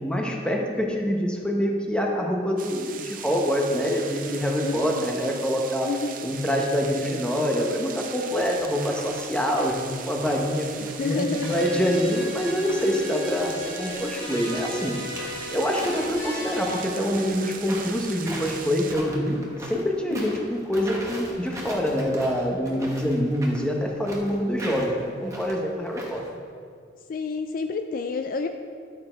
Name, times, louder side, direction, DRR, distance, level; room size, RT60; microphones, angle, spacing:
voice 1, 0.0-5.9 6.2-10.7 11.0-14.9 15.5-26.2, equal, 5° left, 0 dB, 1.0 m, -25 dB
sound 1, 2.6-18.9, right 7 dB, 45° right, 0.6 m, -39 dB
voice 2, 4.6-5.1 5.8-6.3 10.8-11.5 20.1-20.4 27.1-28.5, left 4 dB, 50° left, 7 dB, 0.4 m, -30 dB
sound 2, 8.3-8.6 8.9-9.8 10.0-12.9 13.2-16.6 17.0-26.3, right 1 dB, 15° right, 1.2 m, -40 dB
sound 3, 11.3-16.8, left 1 dB, 65° left, 1.7 m, -36 dB
11.0 x 6.8 x 4.4 m, 2.2 s
head